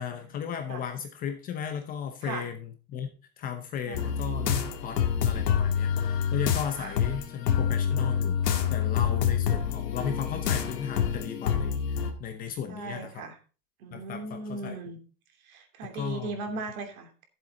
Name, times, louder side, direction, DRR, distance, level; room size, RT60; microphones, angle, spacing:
voice 1, 0.0-3.1 3.4-13.2 13.9-14.8 15.9-16.4, left 8 dB, 20° left, 6 dB, 0.8 m, -35 dB
That scary place (loopable), 3.9-12.1, left 8 dB, 85° left, 2.1 m, -27 dB
voice 2, 12.7-13.4 13.8-15.0 15.4-17.2, right 3 dB, 60° right, 4 dB, 3.0 m, -38 dB
11.5 x 7.6 x 3.9 m, 0.35 s
supercardioid pair, 155°, 47 cm